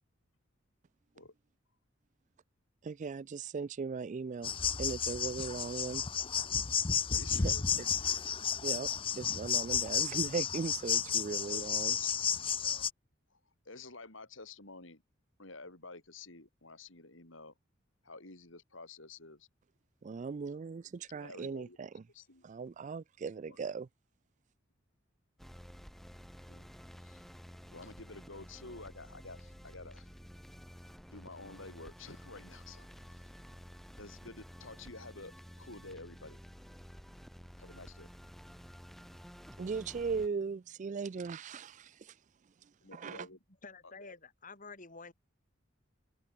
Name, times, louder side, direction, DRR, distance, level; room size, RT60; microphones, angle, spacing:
voice 1, 2.8-4.5 4.8-6.0 7.3-7.5 8.6-8.9 9.2-12.0 20.0-22.0 22.4-23.9 39.6-42.1 43.0-43.3, right 5 dB, 40° right, 0.4 m, -38 dB
sound 1, 4.4-12.9, left 7 dB, 25° left, 0.8 m, -32 dB
voice 2, 7.1-7.6 11.2-11.6 11.9-12.1 12.6-12.9 13.3-13.4 13.7-15.0 15.4-17.5 18.0-19.5 21.2-21.8 22.1-22.5 23.2-23.6 26.5-26.7 27.0-27.2 27.7-30.1 31.1-33.2 34.0-35.3 35.6-36.4 37.6-38.1 42.8-43.4 44.0-44.2, left 3 dB, 75° left, 5.5 m, -50 dB
sound 2, 25.4-40.3, equal, ahead, 7.0 m, -52 dB
voice 3, 43.6-45.1, left 4 dB, 40° left, 5.7 m, -49 dB
head